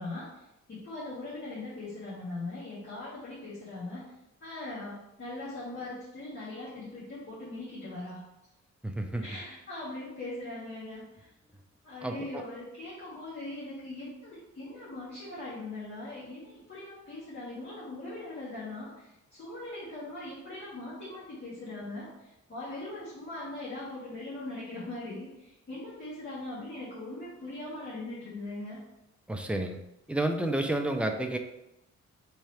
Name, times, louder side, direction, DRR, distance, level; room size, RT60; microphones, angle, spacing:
voice 1, 0.0-4.0 4.4-8.2 9.2-11.3 11.8-28.8, left 2 dB, 40° left, -10 dB, 1.6 m, -40 dB
voice 2, 8.8-9.3 12.0-12.4 29.3-29.8 30.1-31.4, right 1 dB, 5° right, 4 dB, 0.4 m, -30 dB
3.6 x 3.4 x 4.3 m, 0.90 s
wide cardioid pair, 140°, 30 cm